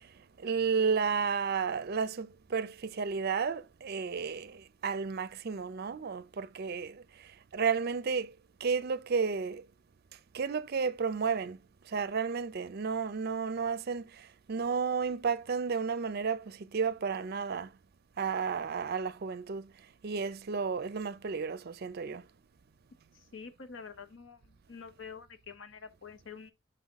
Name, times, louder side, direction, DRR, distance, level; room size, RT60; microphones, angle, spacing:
voice 1, 0.4-7.0 7.5-8.3 8.6-9.7 10.3-11.6 11.9-17.7 18.2-19.7 20.0-22.2, right 5 dB, 50° right, 0.5 m, -32 dB
voice 2, 23.1-26.5, left 5 dB, 65° left, 1.0 m, -47 dB
5.6 x 5.5 x 3.5 m
head